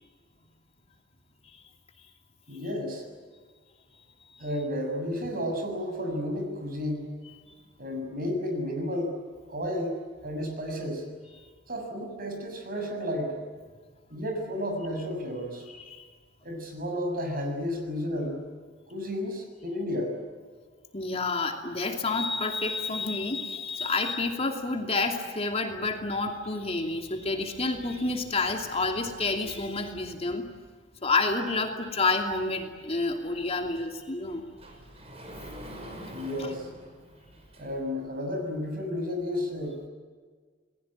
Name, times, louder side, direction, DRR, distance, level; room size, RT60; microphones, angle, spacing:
voice 1, 2.5-3.0 4.4-7.1 7.8-9.1 9.5-11.0 11.7-13.4 14.1-15.6 16.4-18.4 18.9-20.1 36.1-36.7 37.6-39.9, left 1 dB, 50° right, 4 dB, 6.9 m, -32 dB
voice 2, 15.7-16.0 20.9-30.5 31.0-34.5 36.4-36.5, left 3 dB, 35° left, 3 dB, 2.7 m, -29 dB
Sliding door, 33.0-38.0, equal, 35° right, 5.8 m, -46 dB
29.0 x 20.5 x 8.9 m, 1.5 s
head